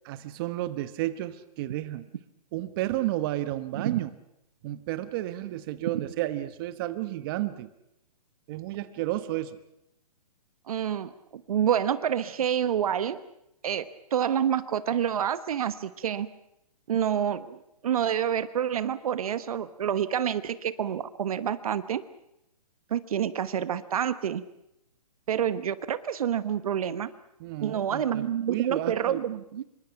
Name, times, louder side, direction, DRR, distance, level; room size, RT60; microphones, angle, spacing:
voice 1, 0.0-2.1 2.5-4.1 4.6-7.7 8.5-9.6 27.4-29.2, right 15 dB, 35° right, 12 dB, 1.2 m, -32 dB
voice 2, 10.7-13.2 13.6-13.9 14.1-16.3 16.9-22.0 22.9-24.4 25.3-27.1 27.6-29.6, right 9 dB, 65° right, 13 dB, 1.2 m, -28 dB
26.0 x 23.5 x 5.9 m, 0.81 s
hypercardioid pair, 145°, 20 cm